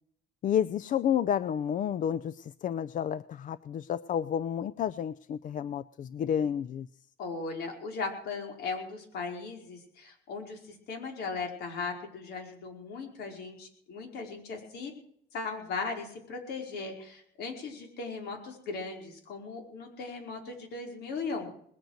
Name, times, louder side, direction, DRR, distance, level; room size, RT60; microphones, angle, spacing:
voice 1, 0.4-6.9, left 9 dB, 50° left, 17 dB, 0.5 m, -30 dB
voice 2, 7.2-14.9 15.3-21.5, left 4 dB, 75° left, 3 dB, 5.1 m, -38 dB
20.5 x 9.2 x 6.6 m, 0.65 s
cardioid pair, 110°, 17 cm